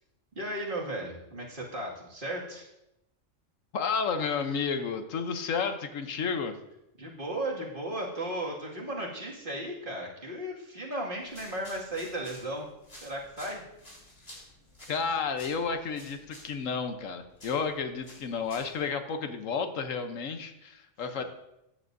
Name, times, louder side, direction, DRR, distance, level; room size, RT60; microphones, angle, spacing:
voice 1, 0.3-2.7 7.0-12.7 13.0-13.6 21.2-21.3, right 1 dB, 40° right, -4 dB, 2.3 m, -35 dB
voice 2, 3.7-6.5 14.9-21.2, left 5 dB, 80° left, 8 dB, 1.2 m, -31 dB
sound 1, 11.2-18.9, left 1 dB, 50° left, 4.0 m, -52 dB
14.5 x 9.7 x 2.6 m, 0.88 s
omnidirectional pair, 1.3 m